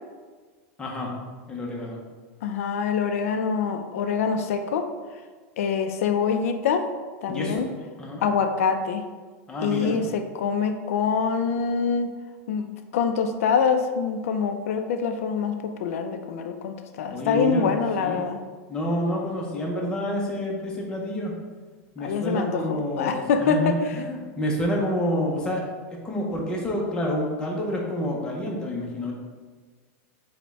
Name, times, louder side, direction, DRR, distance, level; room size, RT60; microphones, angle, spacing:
voice 1, 0.8-1.1 1.5-2.0 7.3-7.6 8.0-8.3 9.5-10.1 17.1-18.3 18.7-21.3 21.9-25.7 26.0-29.1, left 1 dB, 10° left, -2 dB, 0.5 m, -28 dB
voice 2, 2.4-4.9 5.6-6.9 7.2-7.7 8.2-9.1 9.6-12.1 12.5-18.4 22.0-23.9, left 6 dB, 85° left, 7 dB, 0.3 m, -25 dB
5.0 x 2.1 x 3.4 m, 1.4 s
supercardioid pair, 165°, 8 cm